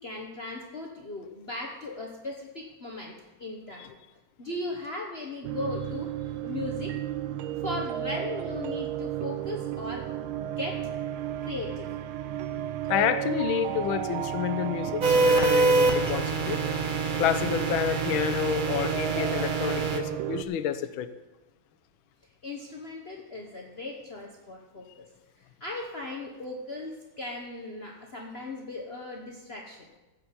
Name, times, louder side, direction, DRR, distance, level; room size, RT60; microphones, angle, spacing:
voice 1, 0.0-3.9 4.4-7.0 7.6-10.9 11.4-11.9 22.4-25.0 25.6-29.9, left 2 dB, 40° left, -1 dB, 1.1 m, -38 dB
sound 1, 5.4-20.4, right 12 dB, 90° right, 1.5 m, -33 dB
voice 2, 12.9-16.6 17.2-21.1, left 10 dB, 75° left, 11 dB, 1.5 m, -29 dB
sound 2, 15.0-20.0, right 3 dB, 50° right, 0.5 m, -25 dB
15.0 x 5.6 x 6.9 m, 1.1 s
omnidirectional pair, 2.3 m